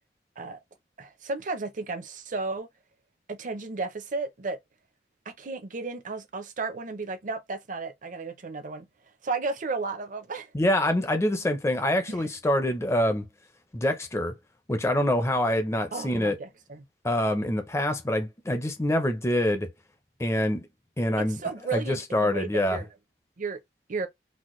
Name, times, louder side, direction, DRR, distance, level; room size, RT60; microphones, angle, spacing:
voice 1, 1.0-2.7 3.3-4.6 5.3-8.9 9.2-10.5 12.1-12.3 15.9-16.9 21.2-22.9 23.4-23.6 23.9-24.1, right 3 dB, 45° right, 0.6 m, -33 dB
voice 2, 10.5-13.2 13.7-14.3 14.7-16.4 17.0-19.7 20.2-20.7 21.0-21.4 21.7-22.8, left 1 dB, 15° left, 0.5 m, -25 dB
4.1 x 2.1 x 3.1 m
head